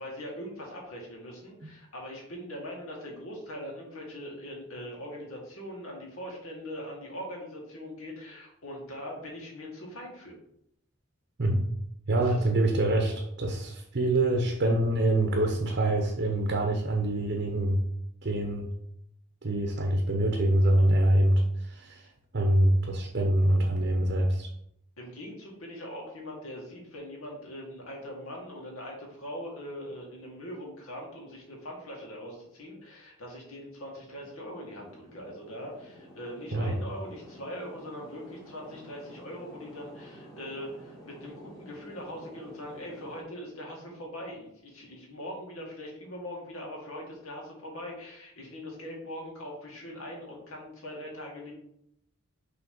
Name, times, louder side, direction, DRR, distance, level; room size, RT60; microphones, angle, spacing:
voice 1, 0.0-10.4 12.3-12.4 25.0-51.5, equal, 85° left, -1 dB, 1.9 m, -41 dB
voice 2, 12.1-17.8 18.2-18.7 19.4-22.1 22.3-24.5 36.5-36.7, right 1 dB, 50° right, 2 dB, 0.7 m, -25 dB
sound 1, 34.0-43.2, equal, 20° left, 2.2 m, -50 dB
6.0 x 3.2 x 5.3 m, 0.77 s
head